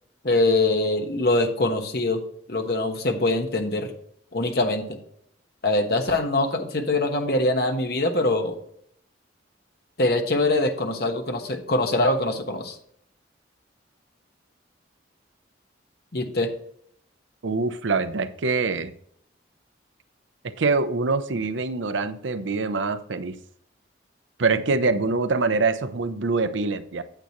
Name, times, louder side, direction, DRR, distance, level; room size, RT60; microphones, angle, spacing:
voice 1, 0.2-2.2 2.5-3.9 4.3-4.9 5.6-8.6 10.0-12.7 16.1-16.5, left 2 dB, 55° left, 4 dB, 1.2 m, -23 dB
voice 2, 17.4-18.9 20.4-23.4 24.4-27.0, right 4 dB, 75° right, 11 dB, 0.6 m, -24 dB
8.9 x 8.1 x 3.0 m, 0.67 s
head